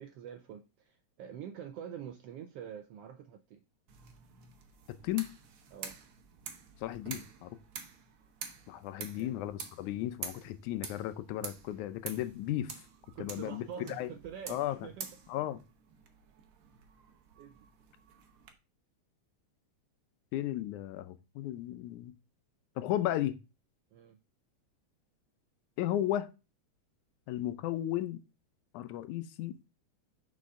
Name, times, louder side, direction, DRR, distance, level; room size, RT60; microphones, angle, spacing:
voice 1, 0.0-3.6 5.7-6.0 9.0-9.4 13.1-15.1 17.4-17.7 23.9-24.2, right 8 dB, 80° right, 1.4 m, -46 dB
sound 1, 3.9-18.5, right 6 dB, 60° right, 1.6 m, -48 dB
voice 2, 6.8-7.5 8.7-12.7 13.2-14.1 14.5-14.8 15.3-15.6 20.3-22.1 22.8-23.4 25.8-26.3 27.3-28.2 28.7-29.6, left 13 dB, 85° left, 2.2 m, -34 dB
6.3 x 5.5 x 3.6 m
omnidirectional pair, 3.4 m